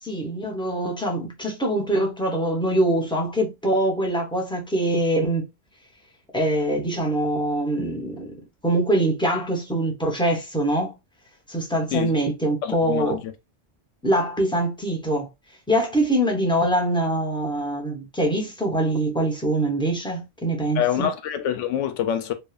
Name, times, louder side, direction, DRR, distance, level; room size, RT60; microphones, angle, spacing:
voice 1, 0.0-5.5 6.3-8.4 8.6-10.9 11.5-13.2 14.0-15.3 15.7-21.1, right 1 dB, 5° left, 0.6 m, -23 dB
voice 2, 12.6-13.3 20.8-22.3, left 10 dB, 80° left, 0.9 m, -26 dB
3.0 x 2.1 x 2.3 m
omnidirectional pair, 1.2 m